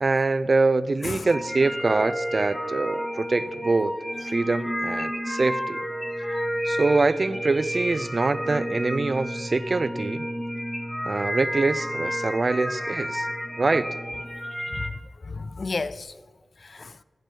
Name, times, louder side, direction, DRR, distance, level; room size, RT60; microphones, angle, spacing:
voice 1, 0.0-3.9 4.2-5.8 6.7-10.3 11.1-13.3 13.6-13.9, right 3 dB, 50° right, 0.4 m, -24 dB
sound 1, 1.3-14.9, equal, 10° left, 1.1 m, -31 dB
voice 2, 14.7-16.1 16.6-17.0, left 3 dB, 65° left, 0.4 m, -33 dB
13.0 x 11.5 x 4.5 m
cardioid pair, 60°, 0 cm